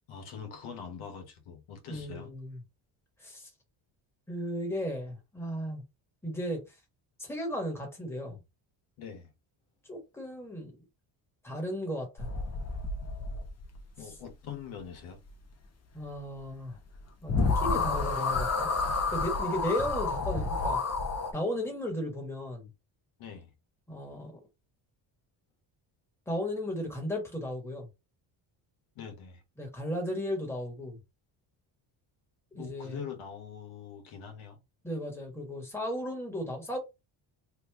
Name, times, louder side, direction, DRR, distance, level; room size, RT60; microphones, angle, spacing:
voice 1, 0.1-2.3 9.0-9.3 14.0-15.2 23.2-23.5 28.9-29.4 32.5-34.6, left 7 dB, 85° left, 1.1 m, -43 dB
voice 2, 1.9-2.6 3.2-3.5 4.3-5.8 6.2-6.6 7.2-8.4 9.9-10.7 11.4-12.3 15.9-16.8 17.2-18.7 19.1-20.8 21.3-22.7 23.9-24.4 26.3-27.9 29.6-31.0 32.5-33.0 34.8-36.8, equal, 5° left, 1.4 m, -35 dB
sound 1, 12.2-13.8 16.9-17.0 17.3-21.3, left 4 dB, 30° left, 0.8 m, -30 dB
3.2 x 2.4 x 3.4 m
cardioid pair, 125°, 48 cm